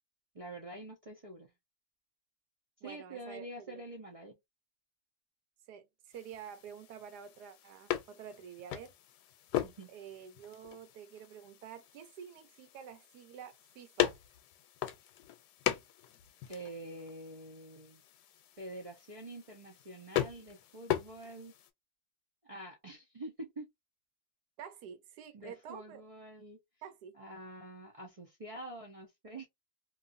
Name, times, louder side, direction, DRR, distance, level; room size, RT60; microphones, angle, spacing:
voice 1, 0.3-1.5 2.8-4.4 9.6-9.9 16.5-18.0 18.6-21.5 22.4-23.7 25.3-26.6 27.1-29.5, right 1 dB, 55° right, 0.3 m, -46 dB
voice 2, 2.8-3.8 5.7-8.9 9.9-14.2 24.6-26.0 26.8-27.1, right 8 dB, 85° right, 1.3 m, -49 dB
sound 1, 6.1-21.7, left 12 dB, 85° left, 1.2 m, -39 dB
2.9 x 2.4 x 2.5 m
omnidirectional pair, 1.7 m